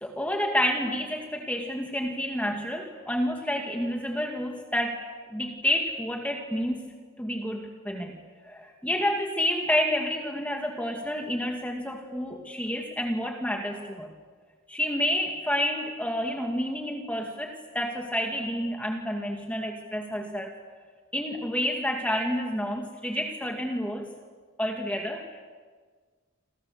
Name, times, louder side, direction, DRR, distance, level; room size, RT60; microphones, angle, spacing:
voice 1, 0.0-5.0 5.3-6.9 7.2-8.1 8.4-14.1 14.7-20.5 21.1-24.0 24.6-25.4, equal, 5° left, 1 dB, 2.2 m, -29 dB
28.5 x 27.5 x 6.8 m, 1.5 s
head